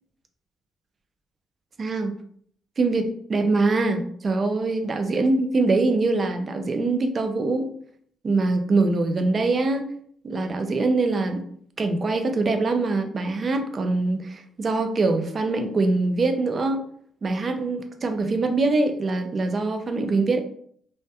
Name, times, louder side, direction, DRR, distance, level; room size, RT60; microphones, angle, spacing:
voice 1, 1.8-2.1 2.8-7.7 8.2-9.9 10.2-11.4 11.8-16.9 17.2-20.4, right 3 dB, 40° right, 7 dB, 0.4 m, -23 dB
2.2 x 2.1 x 2.7 m, 0.62 s
cardioid pair, 90°, 0 cm